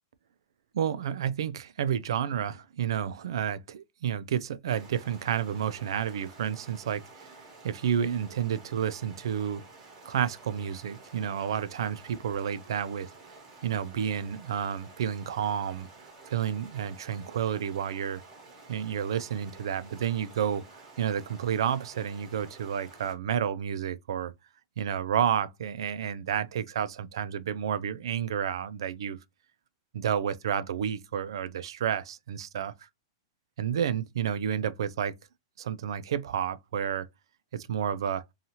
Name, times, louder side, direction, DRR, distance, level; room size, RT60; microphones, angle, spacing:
voice 1, 0.7-7.4 7.6-9.6 10.1-13.1 13.6-15.9 16.3-18.2 18.7-20.6 21.0-24.3 24.8-29.2 29.9-32.7 33.6-35.1 35.6-37.1 37.5-38.2, right 8 dB, 75° right, 0.4 m, -30 dB
Stream, 4.7-23.1, right 3 dB, 20° right, 1.0 m, -51 dB
2.7 x 2.3 x 2.8 m
supercardioid pair, 160°, 3 cm